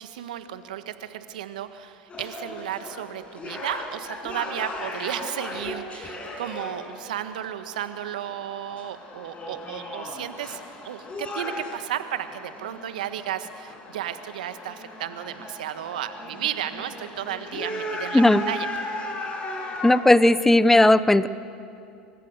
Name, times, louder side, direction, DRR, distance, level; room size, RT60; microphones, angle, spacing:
voice 1, 0.0-18.2 18.5-18.7, right 11 dB, 75° right, 10 dB, 1.6 m, -33 dB
sound 1, 2.1-20.0, left 2 dB, 25° left, 6.3 m, -37 dB
voice 2, 19.8-21.3, left 1 dB, 5° left, 16 dB, 1.0 m, -16 dB
29.0 x 24.5 x 6.7 m, 2.6 s
hypercardioid pair, 80°, 4 cm